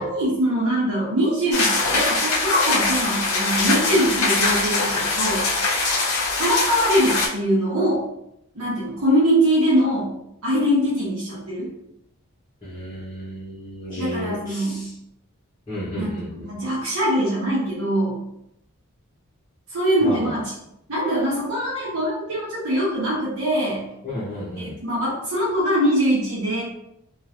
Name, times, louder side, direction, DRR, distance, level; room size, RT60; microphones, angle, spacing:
voice 1, 0.0-5.5 6.4-8.0 8.5-10.1 10.4-11.7 14.0-14.8 16.0-16.2 16.5-18.2 19.7-20.5 20.9-23.8 24.6-26.6, equal, 80° right, -8 dB, 1.0 m, -22 dB
sound 1, 1.5-7.3, left 3 dB, 80° left, 0.6 m, -22 dB
voice 2, 12.6-14.9 15.7-16.5 20.0-20.4 24.0-24.8, left 1 dB, 20° left, -11 dB, 0.8 m, -32 dB
3.0 x 2.5 x 2.5 m, 0.79 s
head